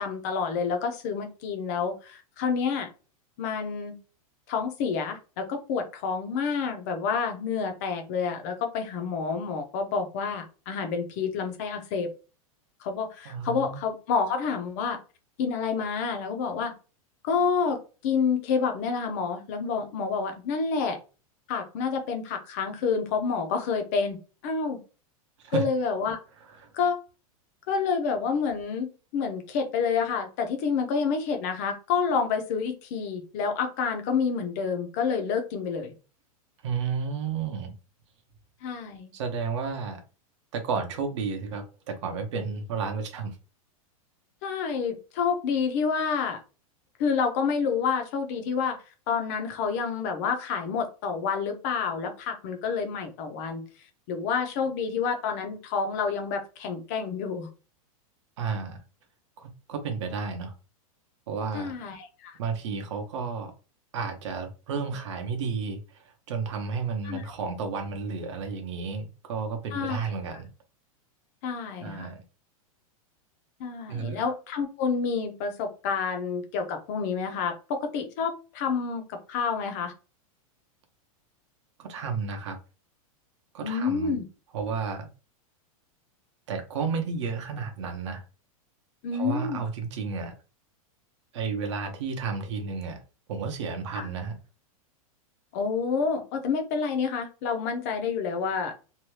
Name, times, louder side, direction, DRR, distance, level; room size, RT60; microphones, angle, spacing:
voice 1, 0.0-2.9 3.4-4.0 4.5-12.1 12.8-15.0 15.4-16.7 17.2-21.0 21.5-24.2 24.4-24.8 25.5-26.2 26.7-27.0 27.7-35.9 38.6-39.1 44.4-46.4 47.0-48.8 49.1-53.6 54.1-57.5 61.5-62.4 67.0-67.3 69.7-70.0 71.4-72.1 73.6-79.9 83.6-84.2 89.0-89.6 94.0-94.1 95.5-98.7, left 5 dB, 25° left, 0.4 m, -28 dB
voice 2, 13.3-13.8 25.4-25.6 26.6-26.7 36.6-37.7 39.1-40.0 40.5-43.4 58.4-58.8 59.4-60.5 61.3-61.7 62.4-63.5 63.9-70.5 71.8-72.2 73.9-74.2 81.8-82.6 83.5-84.1 84.5-85.1 86.5-88.2 89.1-90.3 91.3-93.0 93.3-94.4, right 5 dB, 55° right, 0.8 m, -32 dB
2.7 x 2.2 x 3.1 m
supercardioid pair, 180°, 19 cm